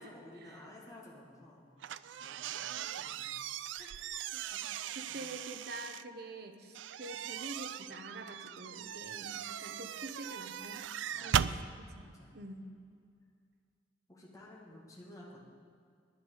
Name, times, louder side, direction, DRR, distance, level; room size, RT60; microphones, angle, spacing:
voice 1, 0.0-1.7 2.2-3.3 3.8-4.1 5.1-5.3 11.1-11.6 11.9-12.4 14.1-15.4, left 1 dB, 20° left, -5 dB, 2.0 m, -54 dB
sound 1, 1.8-6.0 6.8-11.6, right 9 dB, 80° right, 0.4 m, -38 dB
voice 2, 4.3-10.8 11.2-11.5 11.8-12.1 12.3-12.7, right 2 dB, 55° right, 7 dB, 0.9 m, -47 dB
11.0 x 10.0 x 6.4 m, 2.3 s
head